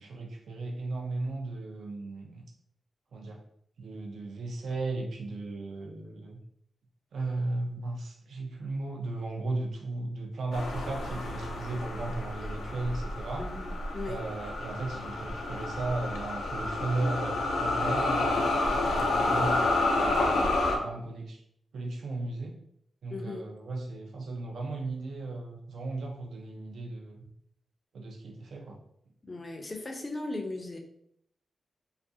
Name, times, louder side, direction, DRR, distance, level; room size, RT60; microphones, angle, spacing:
voice 1, 0.0-2.4 3.1-3.4 3.8-6.4 7.1-13.4 14.0-21.4 21.7-22.5 23.0-27.2 27.9-28.8, right 2 dB, 75° right, 1 dB, 0.4 m, -36 dB
sound 1, 10.5-20.8, left 2 dB, 85° left, 0.4 m, -29 dB
voice 2, 13.4-14.3 23.1-23.5 29.2-30.8, left 2 dB, 30° left, 3 dB, 0.4 m, -38 dB
2.4 x 2.3 x 2.6 m, 0.72 s
wide cardioid pair, 100°, 0 cm